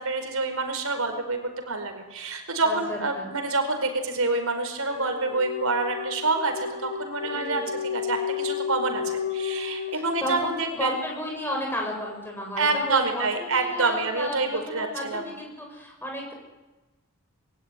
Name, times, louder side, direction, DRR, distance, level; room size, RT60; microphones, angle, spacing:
voice 1, 0.0-10.9 12.6-15.3, right 3 dB, 70° right, 6 dB, 4.7 m, -27 dB
voice 2, 2.6-3.2 7.3-7.6 9.9-16.3, equal, 10° left, 1 dB, 7.8 m, -33 dB
sound 1, 4.2-10.5, left 8 dB, 40° left, 7.9 m, -32 dB
27.0 x 22.0 x 10.0 m, 1.1 s
head